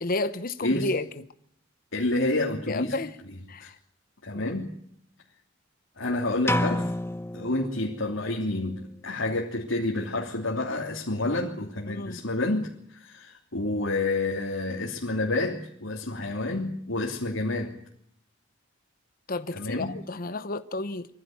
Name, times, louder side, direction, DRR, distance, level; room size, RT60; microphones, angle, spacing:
voice 1, 0.0-1.1 2.7-3.1 3.5-3.8 4.3-4.4 11.9-12.2 19.3-21.1, left 2 dB, 50° left, 1.0 m, -31 dB
voice 2, 1.9-3.0 3.6-3.7 4.2-4.8 6.0-6.9 7.3-17.7 19.5-20.0, left 2 dB, 90° left, 3.1 m, -29 dB
sound 1, 6.5-8.4, left 1 dB, 10° left, 0.8 m, -29 dB
23.5 x 15.0 x 9.4 m
head